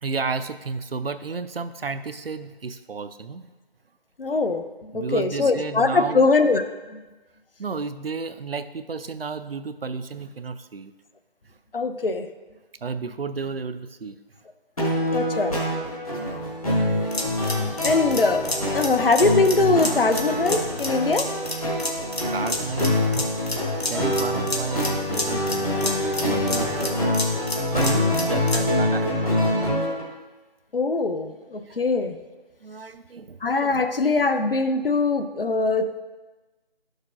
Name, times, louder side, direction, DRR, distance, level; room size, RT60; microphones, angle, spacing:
voice 1, 0.0-3.5 4.9-6.3 7.6-10.9 12.8-14.2 16.2-16.4 17.1-17.3 22.3-23.3 23.9-25.9 26.2-27.2 27.7-29.8 31.7-31.8 32.6-33.4 33.7-33.8, right 4 dB, 70° right, 11 dB, 0.5 m, -32 dB
voice 2, 4.2-6.6 6.9-7.0 11.7-12.3 15.1-15.6 17.2-17.3 17.6-18.5 18.7-21.3 27.9-28.3 30.7-32.2 33.4-36.0, left 3 dB, 65° left, 9 dB, 0.6 m, -22 dB
sound 1, 14.8-30.0, left 1 dB, 35° left, 1.3 m, -25 dB
sound 2, 16.9-28.7, left 2 dB, 80° left, 1.4 m, -31 dB
11.5 x 6.4 x 2.5 m, 1.2 s
figure-of-eight pair, 170°, 31 cm